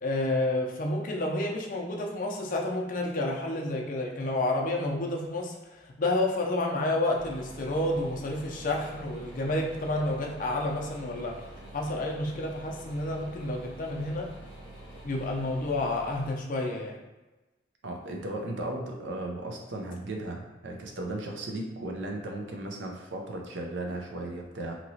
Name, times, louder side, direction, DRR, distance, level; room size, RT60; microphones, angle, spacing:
voice 1, 0.0-11.4 11.7-14.3 15.0-17.0, left 2 dB, 45° left, -1 dB, 0.5 m, -30 dB
sound 1, 7.1-16.3, right 1 dB, 5° left, 0.8 m, -46 dB
voice 2, 17.8-24.7, right 1 dB, 75° right, 1 dB, 0.6 m, -36 dB
2.9 x 2.8 x 2.7 m, 1.1 s
head